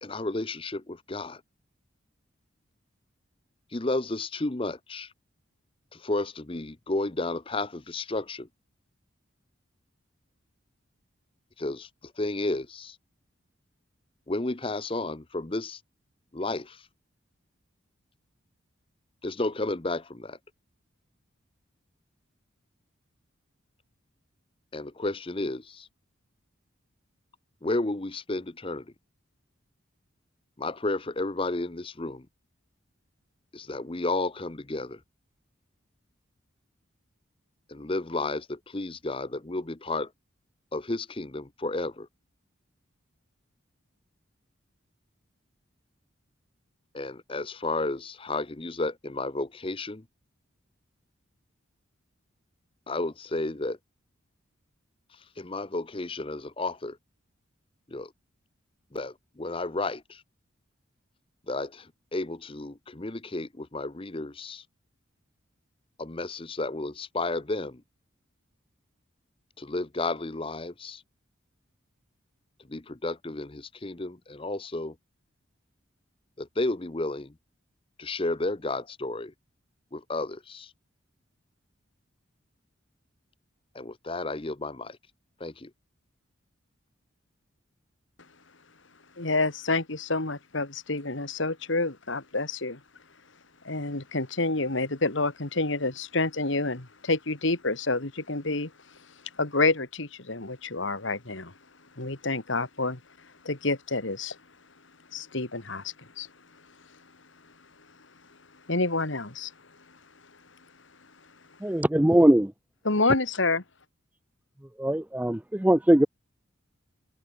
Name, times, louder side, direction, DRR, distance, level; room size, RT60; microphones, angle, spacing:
voice 1, 0.0-1.4 3.7-5.1 5.9-8.5 11.6-11.9 12.2-13.0 14.3-15.8 16.3-16.8 19.2-20.4 24.7-25.9 27.6-28.8 30.6-32.3 33.5-35.0 37.7-40.1 40.7-42.1 46.9-50.0 52.9-53.8 55.4-57.0 57.9-58.1 58.9-60.2 61.5-64.6 66.0-67.8 69.6-71.0 72.7-74.9 76.4-77.3 78.0-79.3 79.9-80.7 83.7-85.0 85.4-85.7, left 2 dB, 25° left, 0.8 m, -32 dB
voice 2, 89.2-92.8 93.6-98.7 99.4-101.5 102.0-103.0 103.4-104.4 105.1-106.3 108.7-109.5 112.8-113.6, left 3 dB, 65° left, 2.3 m, -28 dB
voice 3, 111.6-112.5 114.8-116.1, right 1 dB, 10° right, 0.4 m, -21 dB
head